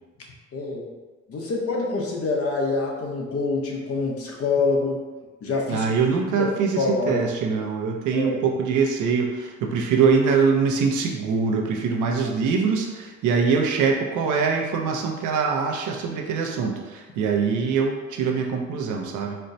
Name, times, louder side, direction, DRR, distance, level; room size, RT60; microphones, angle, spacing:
voice 1, 0.5-0.9 1.3-5.0 5.4-5.8 6.4-7.3 8.1-8.4, left 3 dB, 50° left, -1 dB, 0.8 m, -26 dB
voice 2, 5.7-19.4, right 5 dB, 80° right, 1 dB, 0.6 m, -23 dB
4.3 x 2.1 x 2.6 m, 1.2 s
cardioid pair, 90°, 30 cm